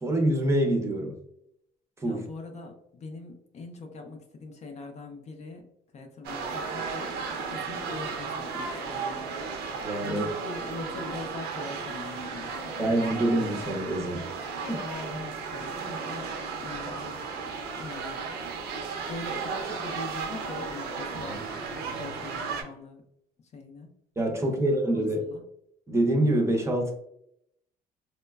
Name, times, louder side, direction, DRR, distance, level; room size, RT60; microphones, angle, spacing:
voice 1, 0.0-1.1 2.0-2.3 9.8-10.2 12.8-14.2 14.7-14.8 21.3-21.4 24.2-25.2 25.9-26.9, right 1 dB, 15° right, 1 dB, 0.6 m, -25 dB
voice 2, 2.0-5.6 5.9-7.1 7.5-9.3 10.0-12.7 14.8-16.3 16.6-17.2 17.8-18.2 19.1-23.0 23.5-23.9 24.4-25.4, left 3 dB, 40° left, 3 dB, 0.5 m, -42 dB
sound 1, 6.2-22.6, right 5 dB, 75° right, 0.6 m, -35 dB
3.0 x 2.1 x 2.2 m, 0.76 s
cardioid pair, 110°, 17 cm